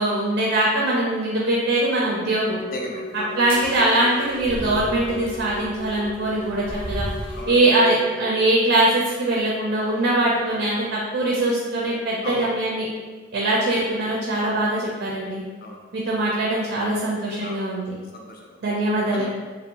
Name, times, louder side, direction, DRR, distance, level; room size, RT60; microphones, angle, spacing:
voice 1, 0.0-2.6 3.4-7.1 7.5-12.9 13.3-15.4 15.9-17.9 18.6-19.2, right 1 dB, 55° right, -4 dB, 0.4 m, -22 dB
Wind instrument woodwind instrument, 2.5-8.5, left 2 dB, 85° left, 0.6 m, -37 dB
voice 2, 2.7-3.4 7.3-7.6 12.2-12.5 15.6-15.9 17.4-17.8 18.1-18.6 19.1-19.2, left 1 dB, 45° left, 1 dB, 0.4 m, -34 dB
sound 1, 3.3-7.5, equal, 10° left, 0.6 m, -35 dB
2.5 x 2.1 x 2.8 m, 1.4 s
head